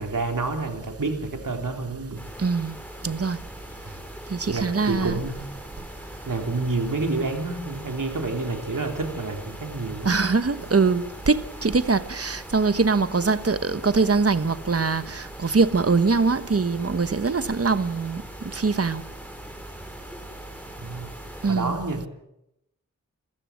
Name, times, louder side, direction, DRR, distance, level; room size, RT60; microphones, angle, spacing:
voice 1, 0.0-2.2 3.8-3.9 4.5-5.4 6.3-10.1 20.8-21.1 21.5-22.1, right 3 dB, 85° right, 3.7 m, -29 dB
sound 1, 2.2-21.5, equal, 5° left, 4.6 m, -42 dB
voice 2, 2.4-2.8 3.0-3.4 4.3-5.2 10.0-18.2 18.5-19.0 21.4-21.8, right 4 dB, 50° right, 1.2 m, -23 dB
28.0 x 15.5 x 7.5 m
wide cardioid pair, 75°, 32 cm